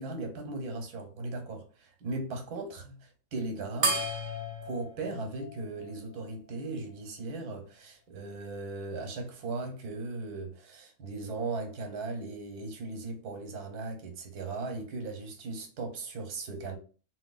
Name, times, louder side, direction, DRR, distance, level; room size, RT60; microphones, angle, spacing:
voice 1, 0.0-4.0 4.6-16.8, right 3 dB, 75° right, 1.3 m, -38 dB
sound 1, 3.8-6.6, right 2 dB, 40° right, 0.7 m, -34 dB
3.0 x 2.9 x 2.3 m
omnidirectional pair, 1.7 m